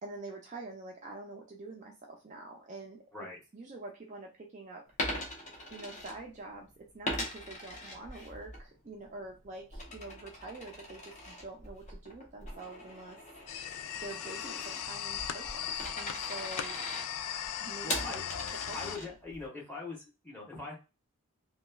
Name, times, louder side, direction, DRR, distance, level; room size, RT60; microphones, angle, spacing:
voice 1, 0.0-4.9 5.7-13.2 14.0-16.8 17.6-18.2 18.5-19.1, right 2 dB, 35° right, 0 dB, 0.4 m, -46 dB
Coin (dropping), 4.9-6.6 7.0-8.6 9.0-19.5, left 1 dB, 35° left, 0.7 m, -41 dB
sound 1, 13.5-19.0, left 9 dB, 90° left, 0.3 m, -38 dB
voice 2, 17.8-18.4 18.6-20.7, left 3 dB, 10° left, -5 dB, 1.0 m, -42 dB
3.0 x 2.3 x 2.2 m, 0.28 s
head